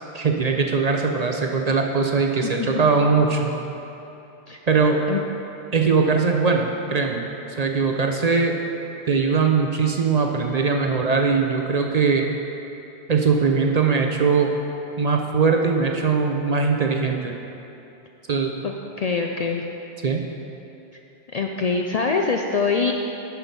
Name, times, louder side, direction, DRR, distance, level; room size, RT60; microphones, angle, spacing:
voice 1, 0.1-3.5 4.7-5.0 5.7-7.3 7.6-8.5 9.1-12.3 13.1-14.5 15.0-17.4 18.3-18.5 20.0-20.2, right 5 dB, 50° right, 2 dB, 0.6 m, -21 dB
voice 2, 2.4-2.8 4.5-4.6 5.1-5.2 18.6-19.6 21.3-22.9, left 4 dB, 55° left, 2 dB, 0.4 m, -24 dB
10.0 x 5.8 x 5.3 m, 2.9 s
omnidirectional pair, 1.1 m